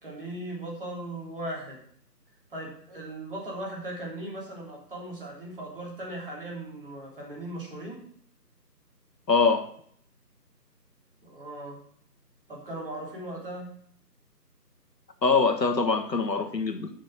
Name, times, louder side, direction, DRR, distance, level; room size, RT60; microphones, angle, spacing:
voice 1, 0.0-1.8 2.5-8.0 11.2-11.8 12.5-13.7, right 1 dB, 35° right, -3 dB, 3.4 m, -38 dB
voice 2, 9.3-9.7 15.2-16.9, left 4 dB, 80° left, 6 dB, 1.6 m, -23 dB
10.5 x 6.5 x 6.2 m, 0.62 s
figure-of-eight pair, 170°, 50 cm